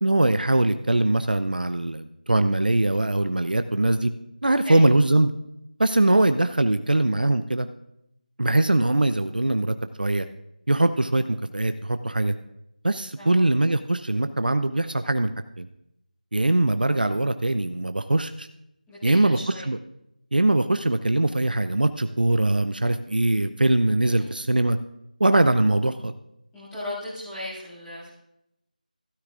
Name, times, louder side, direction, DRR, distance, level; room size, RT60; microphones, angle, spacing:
voice 1, 0.0-4.1 4.4-5.3 5.8-7.7 8.4-10.3 10.7-12.3 12.8-15.3 15.6-15.7 16.3-18.5 19.0-19.4 19.7-19.8 20.3-24.8 25.2-26.1, right 2 dB, 85° right, 10 dB, 0.5 m, -22 dB
voice 2, 18.9-19.7 24.0-24.3 26.5-28.1, left 1 dB, 10° left, -14 dB, 2.3 m, -37 dB
13.0 x 13.0 x 2.5 m, 0.82 s
figure-of-eight pair, 170°, 5 cm